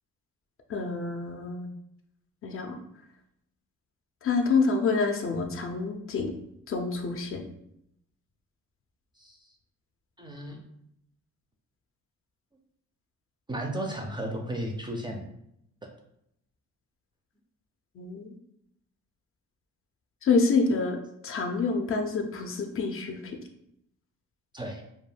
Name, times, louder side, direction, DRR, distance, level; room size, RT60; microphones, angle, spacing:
voice 1, 0.7-1.7 2.4-2.8 4.2-6.3 6.7-7.4 18.0-18.3 20.2-21.0 21.2-23.4, left 4 dB, 45° left, 4 dB, 0.4 m, -27 dB
voice 2, 10.2-10.6 13.5-15.3 15.8-15.9 24.5-24.8, right 1 dB, 15° right, 2 dB, 0.4 m, -34 dB
2.2 x 2.2 x 3.2 m, 0.76 s
cardioid pair, 90°, 30 cm